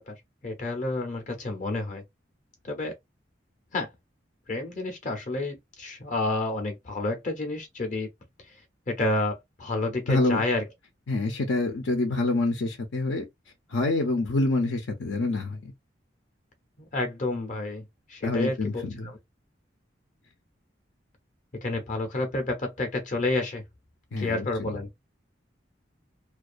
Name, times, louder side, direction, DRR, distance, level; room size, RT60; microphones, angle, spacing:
voice 1, 0.4-2.0 2.6-2.9 3.7-3.9 4.5-8.1 8.5-8.6 8.9-10.6 16.8-17.8 18.1-19.2 21.6-23.6 24.2-24.9, left 2 dB, 40° left, 0.6 m, -30 dB
voice 2, 10.1-10.4 11.1-13.2 13.7-15.7 18.2-19.1 24.1-24.7, left 2 dB, 85° left, 0.6 m, -26 dB
2.3 x 2.3 x 2.4 m
head